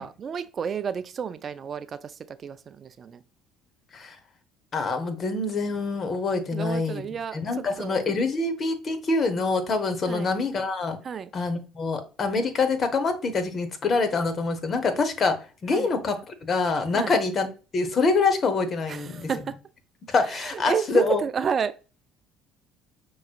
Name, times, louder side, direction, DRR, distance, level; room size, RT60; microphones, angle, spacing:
voice 1, 0.0-3.2 6.5-8.0 10.1-10.3 11.0-11.3 15.7-15.9 16.9-17.1 18.9-19.6 20.4-21.7, right 7 dB, 40° right, 0.3 m, -31 dB
voice 2, 4.7-7.0 7.3-11.0 11.3-15.4 15.6-17.5 17.7-19.3 20.1-21.2, left 3 dB, 40° left, 0.9 m, -25 dB
5.8 x 3.1 x 2.4 m
hypercardioid pair, 60°, 0 cm